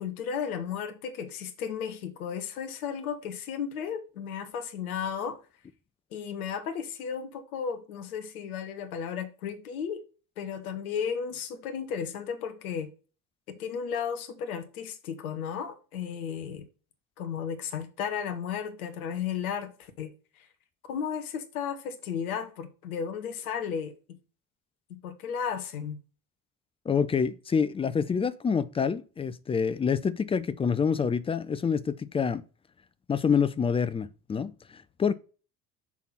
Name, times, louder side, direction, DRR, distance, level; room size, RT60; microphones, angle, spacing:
voice 1, 0.0-5.4 6.1-10.0 10.4-12.9 13.5-16.7 17.2-20.1 20.9-24.2 24.9-26.0, left 7 dB, 70° left, 1.3 m, -34 dB
voice 2, 26.9-32.4 33.1-35.1, left 6 dB, 15° left, 0.4 m, -27 dB
6.3 x 3.6 x 5.7 m
figure-of-eight pair, 60°, 45 cm